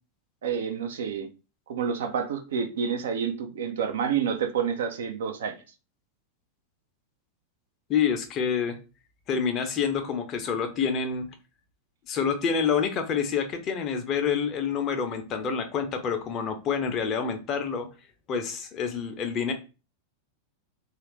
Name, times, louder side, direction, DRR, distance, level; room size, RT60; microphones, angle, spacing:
voice 1, 0.4-1.3 1.7-5.6, right 7 dB, 60° right, 0.5 m, -29 dB
voice 2, 7.9-8.8 9.3-11.3 12.1-17.9 18.3-19.5, left 6 dB, 30° left, 0.6 m, -27 dB
3.1 x 2.4 x 3.0 m
figure-of-eight pair, 90°, 0 cm